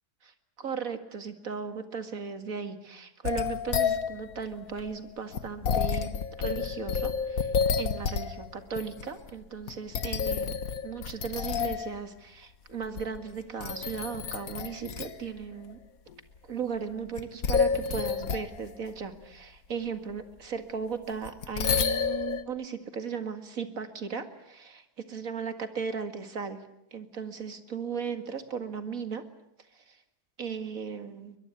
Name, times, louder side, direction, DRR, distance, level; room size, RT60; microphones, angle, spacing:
voice 1, 0.6-7.5 7.8-10.6 10.8-15.8 16.4-26.6 26.9-29.2 29.7-30.0 30.4-31.4, right 6 dB, 60° right, 9 dB, 2.4 m, -36 dB
sound 1, 3.2-8.5 8.7-9.3 9.7-11.9 12.8-13.3 13.6-15.2 15.7-15.8 17.2-18.5 21.2-22.4, left 6 dB, 65° left, 1.7 m, -29 dB
23.0 x 21.0 x 9.6 m, 0.79 s
omnidirectional pair, 1.7 m